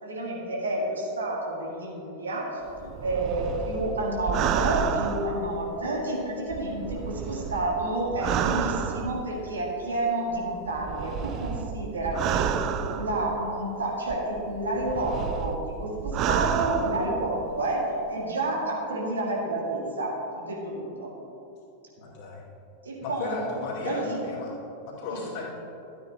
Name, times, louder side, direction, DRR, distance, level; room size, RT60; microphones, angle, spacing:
voice 1, 0.0-12.6 12.9-21.1 22.8-23.4 23.8-24.2 25.1-25.3, right 2 dB, 70° right, -2 dB, 1.9 m, -30 dB
sound 1, 2.8-6.0 6.5-9.5 10.3-13.6 14.1-17.5 17.8-17.9, right 8 dB, 35° right, 0.4 m, -30 dB
voice 2, 22.0-22.4 23.0-24.5 24.9-25.4, left 4 dB, 45° left, -4 dB, 2.2 m, -34 dB
12.5 x 9.0 x 2.8 m, 2.9 s
figure-of-eight pair, 90°, 0 cm